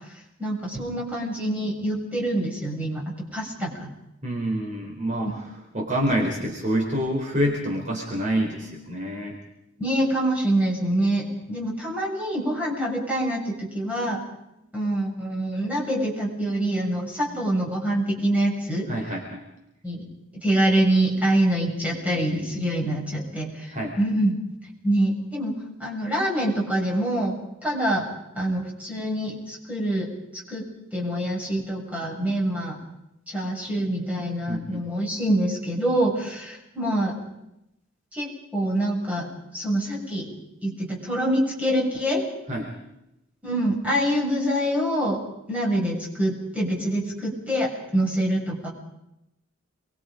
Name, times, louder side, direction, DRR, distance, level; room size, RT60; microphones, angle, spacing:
voice 1, 0.4-3.0 3.3-3.9 9.8-14.2 14.7-18.9 19.8-20.1 20.4-24.3 24.8-27.4 27.6-28.1 28.3-30.1 30.5-32.7 33.3-37.2 38.1-39.3 39.5-40.3 40.6-42.3 43.4-45.2 45.5-48.7, right 1 dB, 5° right, -3 dB, 6.8 m, -25 dB
voice 2, 4.2-9.4 18.9-19.4 23.7-24.0 34.5-34.8 42.5-42.7, equal, 40° right, -1 dB, 4.3 m, -27 dB
29.0 x 23.0 x 5.2 m, 0.86 s
head